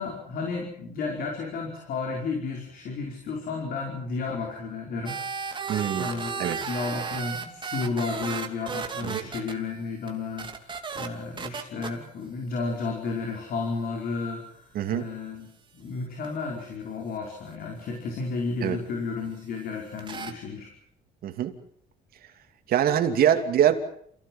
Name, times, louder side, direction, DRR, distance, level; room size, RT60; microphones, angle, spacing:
voice 1, 0.0-5.2 5.4-15.5 15.7-20.7, left 4 dB, 60° left, 1 dB, 5.1 m, -33 dB
sound 1, 5.1-9.5 10.1-10.2 10.4-11.1 11.4-11.9 16.2-16.3 20.0-20.3, right 5 dB, 30° right, 2.8 m, -33 dB
voice 2, 5.7-6.1 6.4-6.6 9.0-9.3 14.7-15.1 18.6-18.8 21.2-21.5 22.7-23.8, right 10 dB, 65° right, 6 dB, 2.8 m, -23 dB
29.0 x 16.5 x 7.4 m, 0.67 s
cardioid pair, 110°, 17 cm